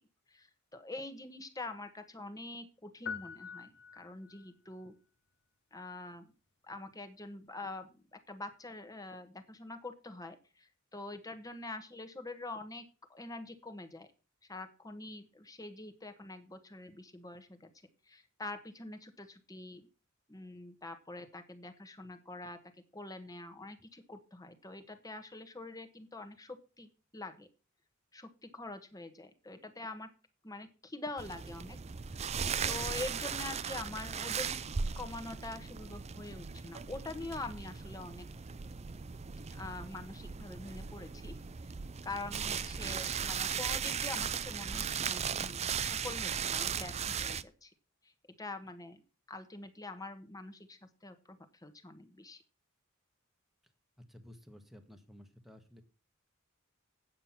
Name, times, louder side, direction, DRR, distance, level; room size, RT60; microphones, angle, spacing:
voice 1, 0.3-4.9 5.7-6.3 6.7-14.1 14.5-17.7 18.1-19.9 20.3-22.6 22.9-27.5 28.1-30.1 30.4-31.8 32.6-34.7 35.0-38.3 39.5-41.4 41.6-41.7 42.0-47.7 48.0-48.1 48.4-49.0 49.3-52.4, left 2 dB, 15° left, 7 dB, 1.3 m, -45 dB
sound 1, 3.1-4.5, left 6 dB, 55° left, 0.8 m, -44 dB
sound 2, 31.2-47.4, right 7 dB, 30° right, 0.5 m, -37 dB
voice 2, 54.0-55.8, left 1 dB, ahead, 5 dB, 1.4 m, -54 dB
9.2 x 7.6 x 5.8 m, 0.32 s
head